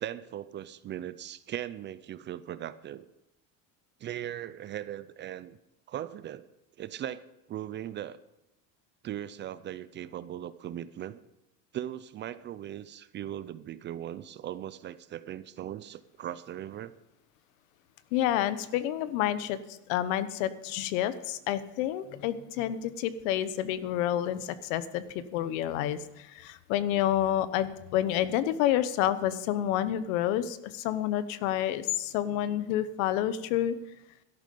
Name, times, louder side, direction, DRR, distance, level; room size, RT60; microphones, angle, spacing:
voice 1, 0.0-3.1 4.0-5.6 5.9-6.5 6.8-8.2 9.0-11.2 11.7-16.9, right 11 dB, 30° right, 16 dB, 0.4 m, -39 dB
voice 2, 18.1-19.6 19.9-33.8, left 12 dB, 80° left, 14 dB, 1.1 m, -29 dB
13.0 x 11.5 x 5.4 m, 0.90 s
cardioid pair, 140°, 39 cm